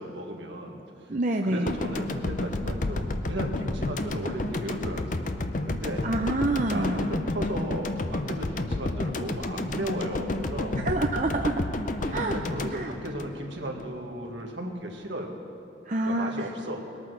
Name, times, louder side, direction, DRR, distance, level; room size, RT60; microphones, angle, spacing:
voice 1, 0.0-1.1 1.4-5.3 5.6-6.1 6.7-10.8 12.1-15.4 16.0-16.9, right 1 dB, 75° right, 1 dB, 1.8 m, -35 dB
voice 2, 1.1-1.7 6.0-7.1 10.8-11.5 12.1-12.3 12.7-12.9 15.9-16.3, right 2 dB, 40° right, 3 dB, 0.6 m, -27 dB
sound 1, 1.7-13.9, left 2 dB, 40° left, 0.6 m, -31 dB
20.5 x 9.0 x 6.3 m, 2.7 s
head